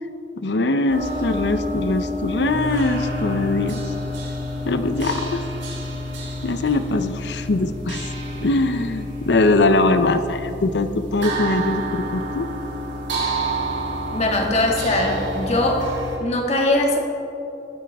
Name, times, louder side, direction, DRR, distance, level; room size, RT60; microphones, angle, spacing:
voice 1, 0.4-3.8 4.7-5.4 6.4-8.0 8.4-12.5, left 2 dB, 65° left, 10 dB, 0.7 m, -21 dB
sound 1, 0.9-16.2, equal, 85° right, 2.7 m, -29 dB
voice 2, 14.1-15.9 16.2-17.0, left 1 dB, 35° left, 1 dB, 1.6 m, -21 dB
20.0 x 9.3 x 3.6 m, 2.9 s
head